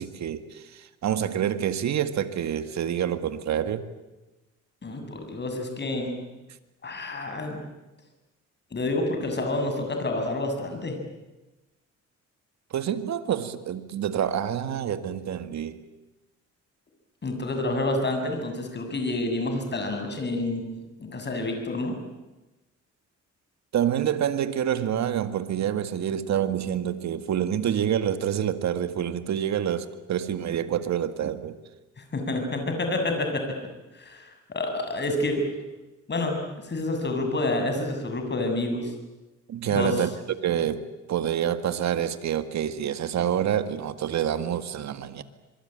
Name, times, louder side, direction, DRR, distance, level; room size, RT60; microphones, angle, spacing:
voice 1, 0.0-3.9 12.7-15.8 23.7-31.6 39.5-45.2, right 9 dB, 65° right, 2.0 m, -27 dB
voice 2, 4.8-6.1 6.8-7.7 8.7-11.0 17.2-20.6 21.0-22.0 32.1-33.5 33.9-35.4 36.1-38.9 39.7-39.9, left 2 dB, 35° left, 7.3 m, -28 dB
26.0 x 23.0 x 9.1 m
cardioid pair, 90°, 30 cm